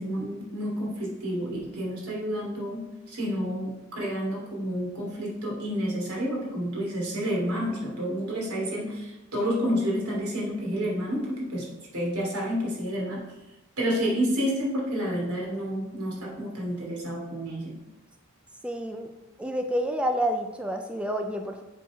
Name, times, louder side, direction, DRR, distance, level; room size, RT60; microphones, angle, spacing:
voice 1, 0.0-11.7 11.9-13.3 13.8-17.7, equal, 85° right, -3 dB, 3.0 m, -29 dB
voice 2, 18.6-19.1 19.4-21.6, equal, 5° right, 4 dB, 0.4 m, -29 dB
7.7 x 4.6 x 4.9 m, 1.0 s
head